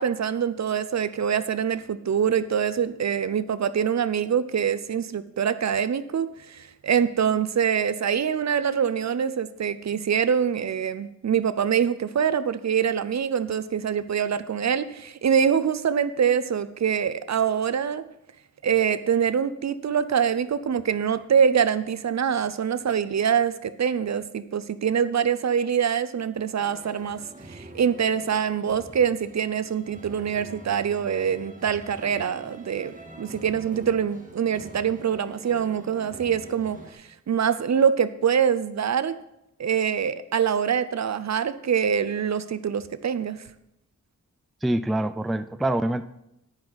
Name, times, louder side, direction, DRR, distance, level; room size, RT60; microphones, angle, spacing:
voice 1, 0.0-18.1 18.6-27.2 27.5-39.2 39.6-43.4, right 7 dB, 60° right, 14 dB, 0.6 m, -24 dB
sound 1, 26.6-36.9, right 1 dB, 25° right, 1.6 m, -45 dB
voice 2, 44.6-46.0, right 1 dB, ahead, 12 dB, 0.3 m, -25 dB
10.5 x 9.8 x 4.0 m, 0.84 s
wide cardioid pair, 105°, 31 cm